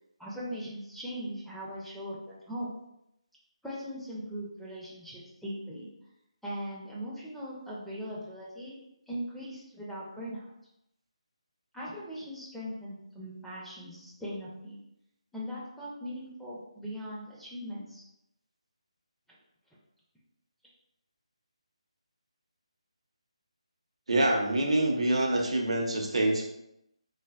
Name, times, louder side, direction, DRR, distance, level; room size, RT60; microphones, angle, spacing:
voice 1, 0.2-2.8 3.6-5.9 6.4-8.8 9.1-10.4 11.7-14.8 15.3-18.0, equal, ahead, -8 dB, 0.4 m, -39 dB
voice 2, 24.1-26.5, right 1 dB, 65° right, 1 dB, 0.5 m, -26 dB
3.2 x 2.1 x 2.2 m, 0.82 s
figure-of-eight pair, 155°, 3 cm